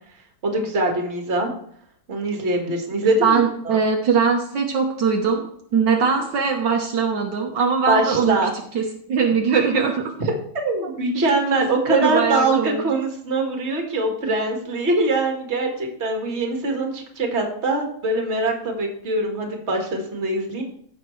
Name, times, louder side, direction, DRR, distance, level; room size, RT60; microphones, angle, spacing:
voice 1, 0.4-1.5 2.1-3.4 3.7-3.8 7.9-8.5 10.2-20.6, right 2 dB, 35° right, 2 dB, 1.8 m, -23 dB
voice 2, 3.2-5.4 5.7-8.4 8.7-10.1 11.5-11.6 11.9-12.8, right 5 dB, 70° right, 1 dB, 1.7 m, -21 dB
15.0 x 5.9 x 3.2 m, 0.66 s
omnidirectional pair, 2.1 m